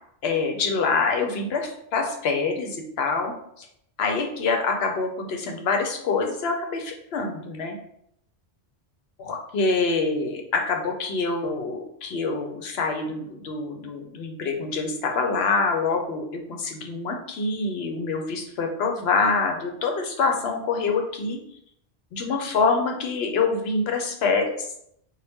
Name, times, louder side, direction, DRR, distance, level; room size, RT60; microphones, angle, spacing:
voice 1, 0.2-3.7 4.0-7.8 9.2-21.4 22.1-24.7, left 4 dB, 80° left, 3 dB, 0.9 m, -26 dB
4.0 x 2.2 x 3.5 m, 0.72 s
omnidirectional pair, 1.0 m